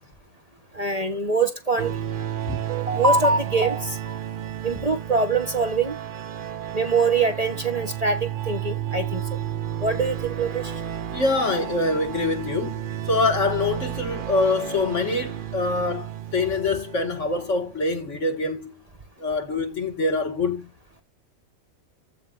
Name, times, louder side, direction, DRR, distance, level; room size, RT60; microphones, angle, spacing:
voice 1, 0.7-1.9 2.7-4.2 4.6-6.0 6.7-8.2 8.5-9.2 9.8-10.6, right 3 dB, 30° right, 1.2 m, -23 dB
sound 1, 1.8-17.7, right 11 dB, 50° right, 0.8 m, -32 dB
voice 2, 11.1-18.7 19.2-20.7, left 3 dB, 60° left, 2.3 m, -25 dB
15.0 x 5.4 x 2.6 m
omnidirectional pair, 1.4 m